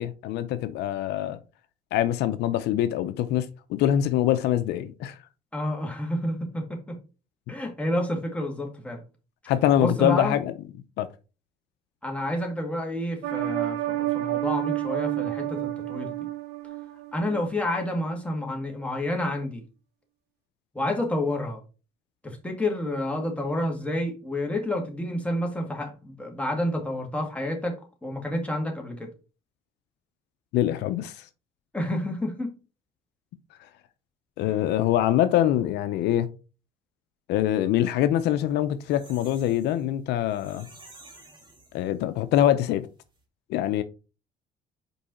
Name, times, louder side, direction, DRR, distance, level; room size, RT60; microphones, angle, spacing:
voice 1, 0.0-1.4 1.9-5.2 9.5-10.5 11.0-11.1 30.5-31.3 34.4-36.3 37.3-40.7 41.7-42.9 43.5-43.8, left 12 dB, 80° left, 0.6 m, -24 dB
voice 2, 5.5-7.0 7.5-9.0 9.8-10.4 12.0-16.1 17.1-19.6 20.7-21.6 22.2-27.8 28.0-29.1 31.7-32.5 34.5-34.6, left 1 dB, 5° left, 2.0 m, -29 dB
sound 1, 13.2-17.4 17.8-17.9, right 16 dB, 85° right, 0.9 m, -29 dB
sound 2, 38.4-42.3 42.7-42.8 43.0-43.2, right 2 dB, 25° right, 2.6 m, -52 dB
5.4 x 4.7 x 4.2 m
cardioid pair, 110°, 17 cm